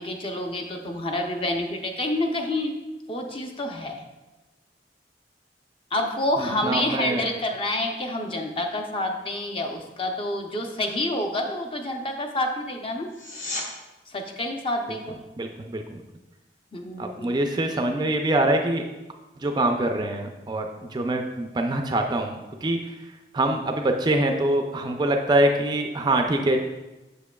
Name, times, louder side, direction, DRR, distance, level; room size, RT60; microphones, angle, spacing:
voice 1, 0.0-2.8 3.1-4.0 5.9-13.1 14.1-15.2 16.7-17.3 17.7-17.8, left 1 dB, 30° left, 4 dB, 0.6 m, -28 dB
voice 2, 6.6-7.2 15.4-16.0 17.0-18.9 19.4-20.6 20.9-22.8 23.3-26.6, right 1 dB, 25° right, 4 dB, 0.4 m, -24 dB
sound 1, 13.1-13.7 25.0-25.1, left 2 dB, 45° left, 1.1 m, -33 dB
7.2 x 6.6 x 2.3 m, 1.1 s
head